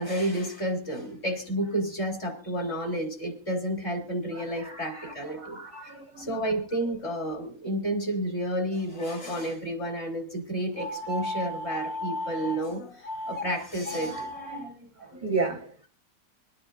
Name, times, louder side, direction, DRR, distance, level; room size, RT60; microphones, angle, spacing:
voice 1, 0.0-15.1, right 1 dB, 40° left, 1 dB, 3.6 m, -31 dB
voice 2, 4.5-5.1 5.4-6.3 15.1-15.8, right 4 dB, 35° right, 4 dB, 0.8 m, -33 dB
sound 1, 10.8-12.6 13.0-13.4 13.8-14.6, left 1 dB, 80° left, 3.0 m, -34 dB
27.0 x 9.8 x 2.6 m, 0.39 s
omnidirectional pair, 1.8 m